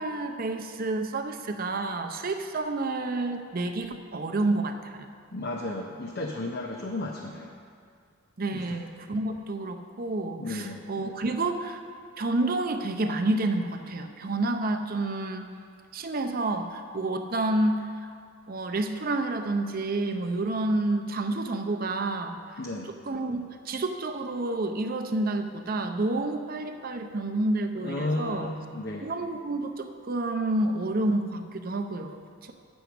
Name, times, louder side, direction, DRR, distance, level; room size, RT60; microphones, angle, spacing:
voice 1, 0.0-5.1 8.4-11.8 12.2-15.5 15.9-18.1 18.5-22.4 22.9-28.5 29.0-32.5, right 2 dB, 40° right, 6 dB, 0.6 m, -29 dB
voice 2, 5.3-7.5 8.5-8.8 10.4-10.8 22.6-22.9 27.8-29.1, left 2 dB, 50° left, 1 dB, 0.6 m, -33 dB
8.2 x 6.2 x 6.9 m, 2.2 s
head